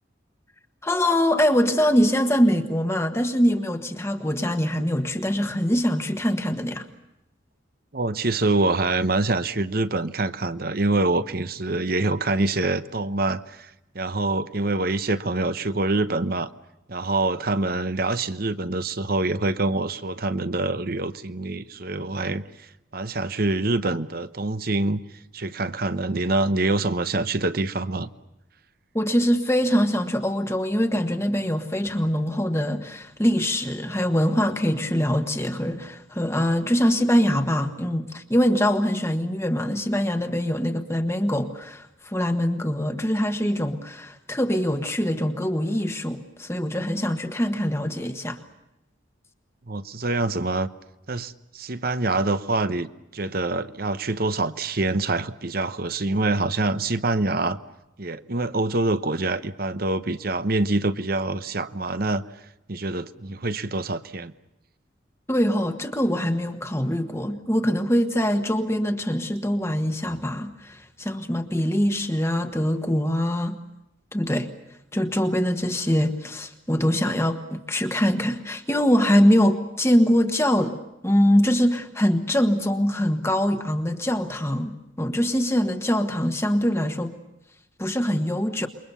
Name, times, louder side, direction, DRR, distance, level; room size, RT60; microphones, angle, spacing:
voice 1, 0.8-6.9 28.9-48.4 65.3-73.6 74.1-74.5 74.9-87.1 87.8-88.7, equal, 15° left, 6 dB, 1.4 m, -23 dB
voice 2, 7.9-16.5 16.9-22.7 22.9-25.0 25.3-28.1 49.7-50.7 51.1-57.6 58.0-62.2 62.7-64.3, right 2 dB, 50° right, 12 dB, 1.0 m, -25 dB
28.0 x 23.0 x 7.0 m, 0.88 s
head